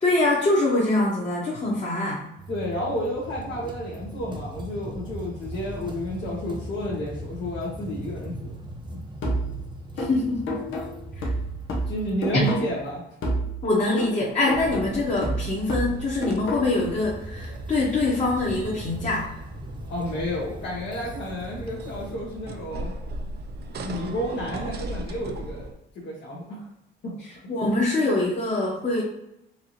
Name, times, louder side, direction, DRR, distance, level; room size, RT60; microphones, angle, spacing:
voice 1, 0.0-2.3 10.0-10.6 11.2-11.3 12.3-12.5 13.6-19.3 27.2-29.0, left 2 dB, 35° left, -6 dB, 1.3 m, -24 dB
sound 1, 2.4-13.0 14.9-22.1, right 1 dB, 20° right, 0.8 m, -40 dB
voice 2, 2.5-8.6 8.9-9.0 11.9-13.0 19.9-22.9 23.8-25.7 25.9-26.6 27.0-27.1, equal, 60° left, -6 dB, 1.3 m, -31 dB
sound 2, 9.2-12.9 13.2-16.9, right 1 dB, 85° left, 1.0 m, -30 dB
sound 3, 14.5-25.7, right 2 dB, 55° right, 0.6 m, -38 dB
4.6 x 2.7 x 3.0 m, 0.83 s
cardioid pair, 90°, 20 cm